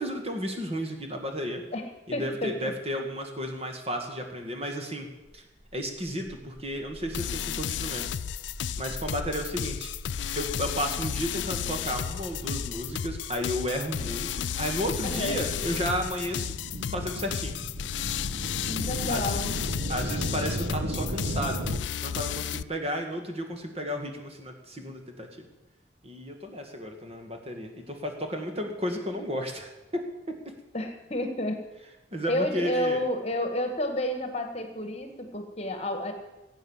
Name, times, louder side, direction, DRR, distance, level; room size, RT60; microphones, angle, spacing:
voice 1, 0.0-1.6 2.1-5.1 5.3-5.4 5.7-8.0 8.8-9.9 10.4-16.5 16.9-17.6 19.1-19.4 19.9-21.7 22.0-25.5 26.0-30.0 30.3-30.5 32.1-33.0, equal, 35° right, 3 dB, 1.9 m, -33 dB
voice 2, 1.7-2.7 15.0-15.5 18.7-19.6 30.7-31.6 32.3-36.1, left 1 dB, 35° left, 6 dB, 1.7 m, -30 dB
sound 1, 5.3-5.4 5.7-21.8, right 1 dB, 90° right, 1.3 m, -37 dB
sound 2, 7.1-22.6, left 9 dB, 80° left, 0.4 m, -33 dB
17.5 x 8.7 x 7.2 m, 1.1 s
head